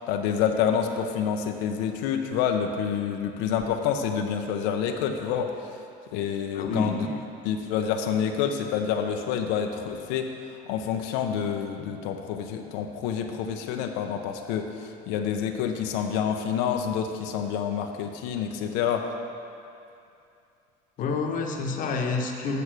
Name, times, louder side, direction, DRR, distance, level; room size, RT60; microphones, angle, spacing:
voice 1, 0.1-5.5 6.1-7.1 7.4-10.3 10.7-19.1, left 8 dB, 85° left, 4 dB, 0.7 m, -28 dB
voice 2, 6.5-7.2 21.0-22.6, left 4 dB, 45° left, 2 dB, 1.1 m, -28 dB
8.3 x 7.0 x 6.2 m, 2.6 s
cardioid pair, 130°, 18 cm